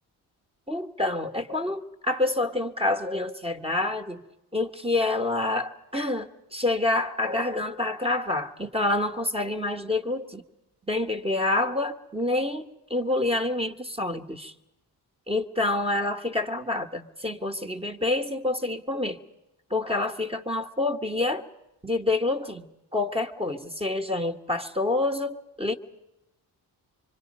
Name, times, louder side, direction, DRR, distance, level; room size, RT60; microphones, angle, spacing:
voice 1, 0.7-4.2 4.5-10.4 10.9-14.5 15.3-19.2 19.7-21.4 21.8-22.7 22.9-25.7, left 2 dB, 15° right, 4 dB, 1.3 m, -27 dB
25.0 x 23.5 x 5.4 m, 0.94 s
supercardioid pair, 60°, 43 cm